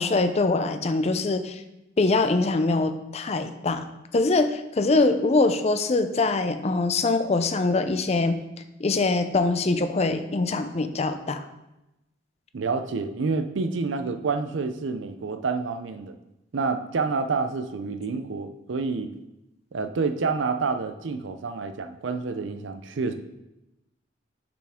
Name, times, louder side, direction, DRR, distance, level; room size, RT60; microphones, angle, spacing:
voice 1, 0.0-1.6 2.0-3.8 4.1-8.4 8.8-11.5, left 3 dB, 35° left, 9 dB, 0.5 m, -23 dB
voice 2, 12.5-16.2 16.5-19.1 19.7-23.1, right 4 dB, 90° right, 9 dB, 0.5 m, -28 dB
6.9 x 5.0 x 3.6 m, 0.95 s
head